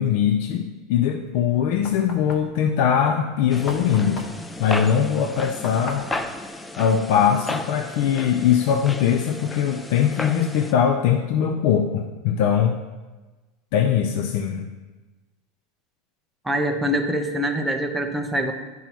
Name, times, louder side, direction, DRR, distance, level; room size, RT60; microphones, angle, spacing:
voice 1, 0.0-4.2 4.6-6.1 6.8-12.8 13.7-14.7, left 8 dB, 65° left, 5 dB, 0.5 m, -21 dB
Knock, 1.3-7.8, left 3 dB, 40° left, 0.9 m, -39 dB
sound 1, 3.5-10.7, left 2 dB, 10° left, 0.4 m, -34 dB
voice 2, 16.4-18.5, equal, 5° right, 3 dB, 0.8 m, -24 dB
10.5 x 5.5 x 3.0 m, 1.2 s
supercardioid pair, 130°, 0 cm